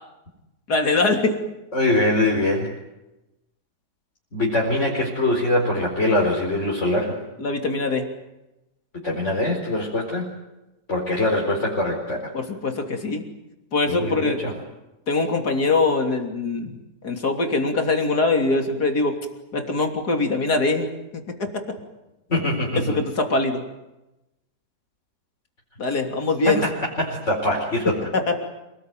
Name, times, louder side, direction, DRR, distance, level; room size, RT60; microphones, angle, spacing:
voice 1, 0.7-1.4 7.4-8.1 12.3-13.3 13.7-14.4 15.1-16.8 17.0-19.2 19.5-20.9 21.4-21.5 22.8-23.6 25.8-26.6 28.1-28.4, left 3 dB, 85° left, 3 dB, 3.7 m, -22 dB
voice 2, 1.7-2.7 4.3-7.2 8.9-10.3 10.9-12.3 13.9-14.5 22.3-23.0 26.4-26.7 27.0-28.0, left 1 dB, 50° left, -2 dB, 4.8 m, -23 dB
28.5 x 20.0 x 9.2 m, 0.98 s
omnidirectional pair, 1.7 m